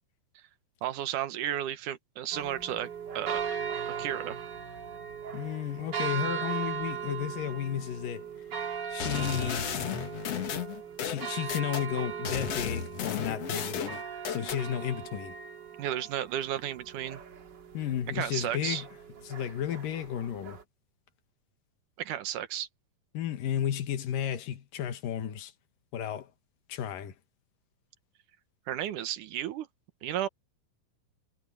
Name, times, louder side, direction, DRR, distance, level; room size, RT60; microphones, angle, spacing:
voice 1, 0.8-2.9 3.1-3.4 3.9-4.4 15.8-17.2 18.1-18.8 22.0-22.7 28.7-29.7 30.0-30.3, right 11 dB, 75° right, 2.6 m, -33 dB
sound 1, 2.3-20.6, right 7 dB, 40° right, 1.9 m, -38 dB
voice 2, 5.3-8.3 8.9-9.7 11.0-14.0 14.3-15.4 17.7-18.9 19.2-20.6 23.1-25.5 25.9-26.3 26.7-27.1, left 10 dB, 90° left, 3.1 m, -33 dB
sound 2, 9.0-11.9 12.3-14.6, left 8 dB, 55° left, 2.3 m, -34 dB
omnidirectional pair, 3.8 m